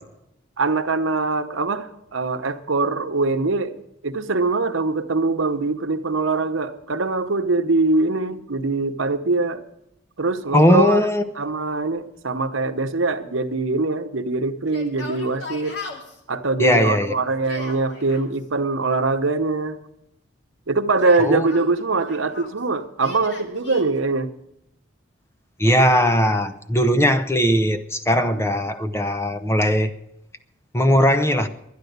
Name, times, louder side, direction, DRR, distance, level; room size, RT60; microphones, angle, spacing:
voice 1, 0.6-3.8 4.0-9.6 10.2-11.0 11.4-15.8 16.3-19.8 20.7-24.3, right 3 dB, 85° right, 8 dB, 1.0 m, -23 dB
voice 2, 10.5-11.2 16.6-17.1 21.2-21.5 25.6-29.9 30.7-31.5, equal, 15° left, 9 dB, 0.7 m, -19 dB
Yell, 14.7-16.2 17.3-18.3 20.8-22.6 23.0-23.8, left 2 dB, 60° left, 2.4 m, -37 dB
11.5 x 10.5 x 8.1 m, 0.82 s
head